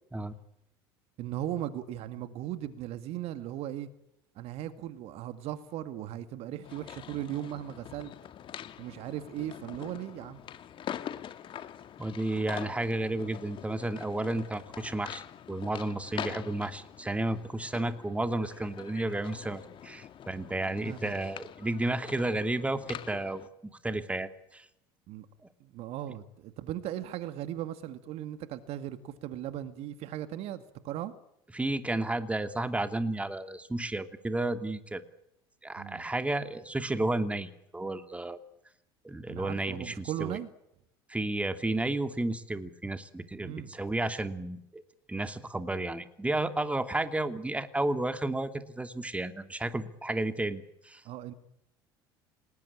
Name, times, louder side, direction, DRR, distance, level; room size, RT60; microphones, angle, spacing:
voice 1, 1.2-3.9 4.4-8.1 8.8-10.4 20.8-21.1 25.1-25.3 25.6-31.1 35.8-36.1 39.3-40.5 43.4-43.7 51.0-51.3, right 12 dB, 60° right, 11 dB, 2.1 m, -38 dB
sound 1, 6.6-23.5, left 10 dB, 45° left, 2.1 m, -44 dB
voice 2, 12.0-23.4 23.8-24.7 31.5-35.0 35.6-38.4 39.0-40.4 41.1-44.8 45.1-51.0, right 2 dB, 10° right, 9 dB, 2.7 m, -32 dB
28.5 x 20.0 x 8.8 m, 0.81 s
hypercardioid pair, 70°, 12 cm